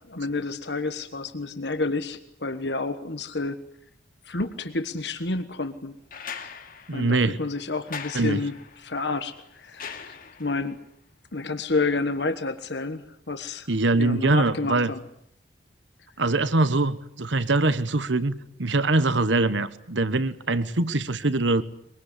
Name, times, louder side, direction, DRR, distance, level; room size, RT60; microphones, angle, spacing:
voice 1, 0.1-3.6 4.2-5.9 6.4-6.6 6.9-10.8 11.3-13.7 13.9-15.0, left 3 dB, 60° left, 9 dB, 1.4 m, -30 dB
sound 1, 6.1-10.7 12.3-12.4, left 6 dB, 45° left, 2.5 m, -41 dB
voice 2, 6.9-7.4 8.1-8.4 13.7-14.9 16.2-21.6, right 2 dB, 75° right, 14 dB, 1.2 m, -23 dB
23.0 x 23.0 x 9.9 m, 0.70 s
head